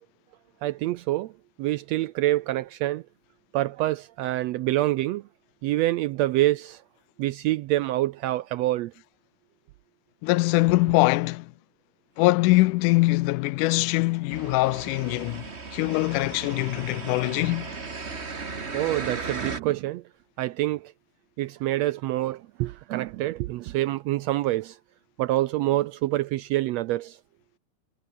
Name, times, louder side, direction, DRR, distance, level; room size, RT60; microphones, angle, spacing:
voice 1, 0.6-1.3 1.6-3.0 3.5-5.2 5.6-6.8 7.2-8.9 18.7-20.0 20.4-20.9 21.4-24.8 25.2-27.2, right 16 dB, 80° right, 1.5 m, -26 dB
voice 2, 10.2-11.5 12.2-15.4 15.7-17.7, left 21 dB, 85° left, 2.1 m, -23 dB
sound 1, 14.3-19.6, right 4 dB, 25° right, 1.9 m, -36 dB
omnidirectional pair, 3.5 m